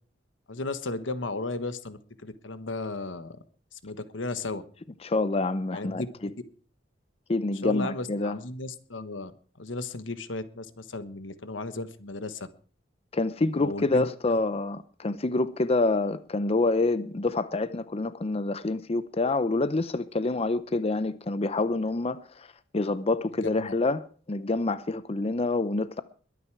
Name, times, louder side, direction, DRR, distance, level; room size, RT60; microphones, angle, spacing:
voice 1, 0.5-3.4 3.7-4.6 5.7-6.3 7.6-9.3 9.6-12.5 13.6-14.4 23.4-23.7, left 2 dB, 85° left, 1.3 m, -35 dB
voice 2, 5.0-6.0 7.3-8.4 13.1-22.5 22.7-26.0, left 2 dB, 30° left, 0.6 m, -27 dB
22.0 x 9.3 x 4.7 m
head